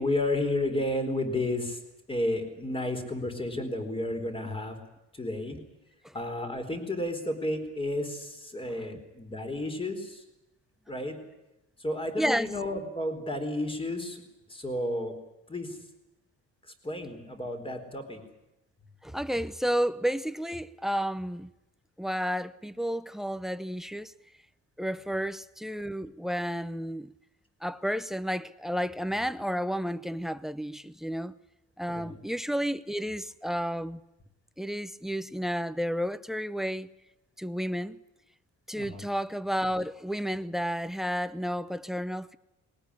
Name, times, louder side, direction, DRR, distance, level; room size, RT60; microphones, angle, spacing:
voice 1, 0.0-1.8 2.1-4.8 5.1-5.6 6.1-10.2 10.9-11.2 11.8-14.2 14.5-15.1 15.5-15.8 16.7-18.2 31.9-32.2 38.7-39.0, left 1 dB, 15° left, 4.3 m, -32 dB
voice 2, 12.2-12.5 19.0-21.5 22.0-24.1 24.8-27.1 27.6-31.4 31.8-34.0 34.6-36.9 37.4-38.0 38.7-42.4, equal, ahead, 0.7 m, -31 dB
21.0 x 18.5 x 9.9 m
cardioid pair, 135°, 31 cm